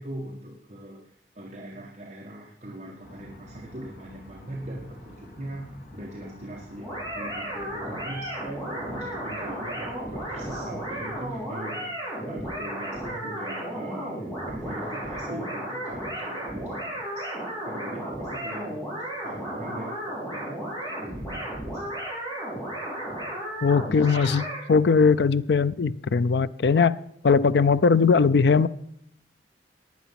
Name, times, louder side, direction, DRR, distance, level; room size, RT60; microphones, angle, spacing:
voice 1, 0.0-18.8 19.2-22.2 23.0-23.1, right 1 dB, 40° right, -2 dB, 1.6 m, -41 dB
sound 1, 3.0-11.3, equal, 50° left, 2.3 m, -48 dB
sound 2, 6.8-24.6, right 1 dB, 20° left, 6.4 m, -34 dB
voice 2, 23.6-27.0 27.2-28.7, left 5 dB, 70° left, 15 dB, 0.4 m, -20 dB
15.5 x 10.0 x 5.8 m, 0.72 s
head